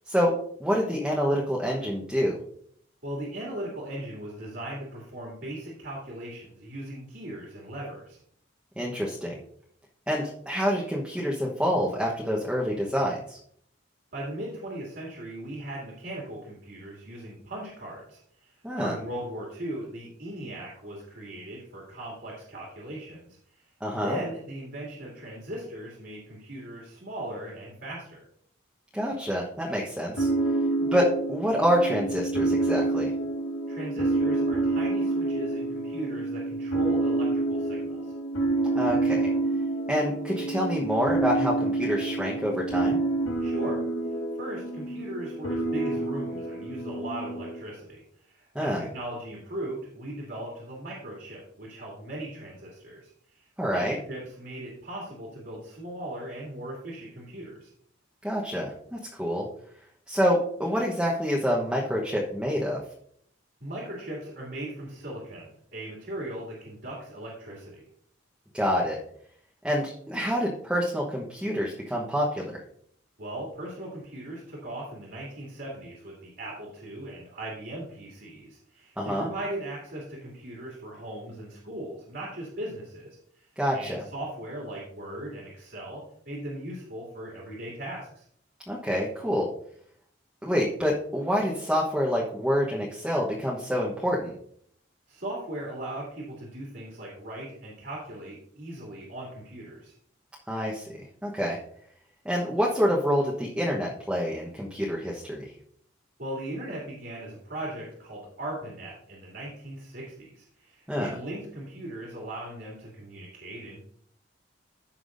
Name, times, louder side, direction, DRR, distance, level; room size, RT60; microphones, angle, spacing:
voice 1, 0.6-2.4 8.8-9.3 10.1-13.4 18.6-19.0 23.8-24.2 28.9-30.3 30.8-33.1 38.7-39.3 39.9-43.0 48.5-48.8 53.6-54.0 58.2-59.4 60.1-62.8 68.5-69.0 69.6-72.6 79.0-79.3 83.6-84.0 88.7-89.5 90.4-94.3 100.5-101.6 102.2-105.4 110.9-111.1, equal, 5° right, -4 dB, 1.1 m, -27 dB
voice 2, 3.0-8.2 14.1-28.2 33.7-38.1 43.4-43.8 44.3-53.8 54.1-57.7 63.6-67.8 73.2-83.5 83.7-88.2 95.1-99.9 106.2-113.8, right 1 dB, 60° right, -4 dB, 2.6 m, -38 dB
sound 1, 30.2-47.6, right 2 dB, 80° left, 1.5 m, -28 dB
14.5 x 5.9 x 2.6 m, 0.65 s
head